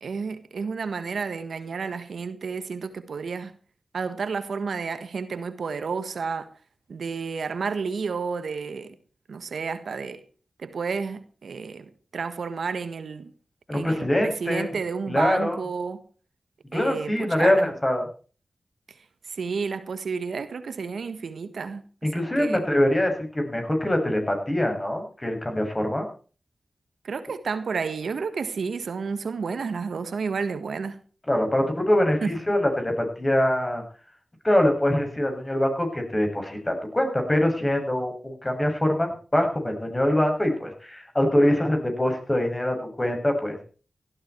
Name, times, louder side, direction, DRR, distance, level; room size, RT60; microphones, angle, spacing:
voice 1, 0.0-3.5 3.9-6.5 6.9-8.9 9.3-10.2 10.6-13.3 13.7-16.0 16.7-17.7 19.3-21.8 22.1-22.7 27.0-31.0 32.2-32.3, right 5 dB, 80° right, 1.5 m, -31 dB
voice 2, 13.7-14.7 15.1-15.6 16.7-18.0 22.0-26.1 31.3-33.8 34.4-43.6, left 1 dB, 25° left, 7.4 m, -24 dB
17.0 x 13.5 x 4.6 m
cardioid pair, 40°, 0 cm